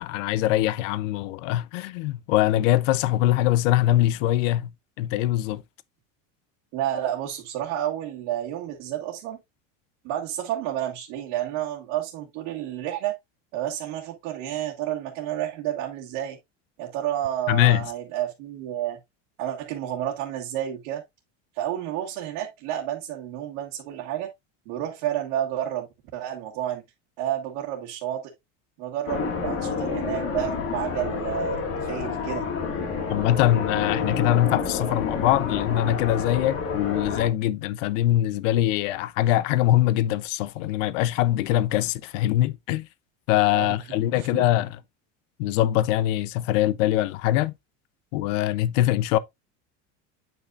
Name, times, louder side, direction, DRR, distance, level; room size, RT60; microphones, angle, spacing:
voice 1, 0.0-4.7 5.0-5.6 17.5-17.9 33.1-42.9 43.3-44.8 45.4-47.5 48.1-49.2, left 14 dB, 75° left, 0.7 m, -23 dB
voice 2, 6.7-9.4 10.0-13.2 13.5-16.4 16.8-19.0 19.4-21.0 21.5-24.3 24.6-25.9 26.1-26.8 27.2-28.3 28.8-32.5 43.5-43.7 44.1-44.4, right 11 dB, 60° right, 1.8 m, -30 dB
sound 1, 29.1-37.3, left 5 dB, 35° left, 1.8 m, -29 dB
8.8 x 5.5 x 2.4 m
cardioid pair, 155°, 38 cm